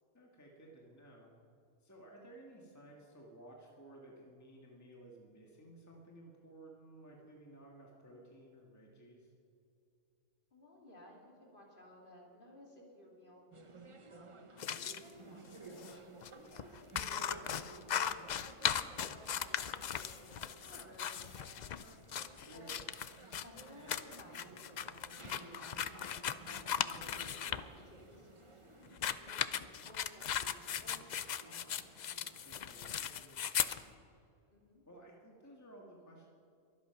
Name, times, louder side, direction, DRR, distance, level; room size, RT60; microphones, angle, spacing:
voice 1, 0.1-1.3 1.8-9.3 22.4-22.9 32.4-33.9 34.9-36.3, right 1 dB, 15° left, -1 dB, 1.7 m, -56 dB
voice 2, 10.5-22.0 22.5-22.8 23.4-32.0 34.5-34.8, left 1 dB, 40° left, -2 dB, 3.0 m, -58 dB
sound 1, 13.5-33.0, right 3 dB, 30° right, 0.7 m, -56 dB
sound 2, 14.6-15.0 15.8-15.9 16.2-16.3 16.5-27.6 28.9-33.8, left 8 dB, 65° left, 0.4 m, -38 dB
23.0 x 8.5 x 5.8 m, 2.6 s
omnidirectional pair, 1.3 m